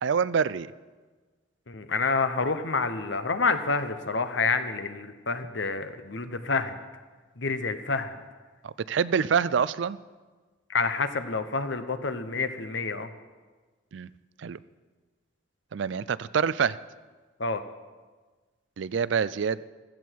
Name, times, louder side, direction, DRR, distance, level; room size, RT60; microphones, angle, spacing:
voice 1, 0.0-0.7 8.6-10.0 13.9-14.1 14.4-14.6 15.7-16.8 18.8-19.6, right 6 dB, 70° right, 17 dB, 0.4 m, -26 dB
voice 2, 1.7-6.8 7.4-8.2 10.7-13.1 17.4-17.6, left 4 dB, 65° left, 10 dB, 0.9 m, -28 dB
15.0 x 14.5 x 4.6 m, 1.4 s
head